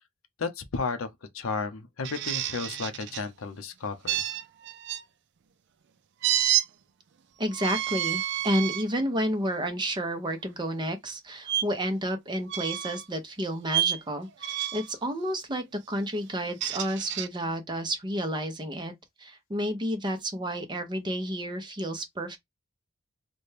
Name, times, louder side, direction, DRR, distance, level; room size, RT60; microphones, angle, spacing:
voice 1, 0.4-1.1 1.3-4.2, left 4 dB, 75° left, 0.6 m, -33 dB
sound 1, 2.0-3.2 4.1-5.0 6.2-6.7 7.5-8.8 9.5-9.7 11.5-11.6 12.5-13.0 13.7-14.0 14.4-14.9 16.3-17.3, right 12 dB, 55° right, 0.4 m, -29 dB
voice 2, 7.4-18.9 19.2-22.4, equal, 20° right, 0.7 m, -31 dB
4.1 x 2.2 x 3.2 m
head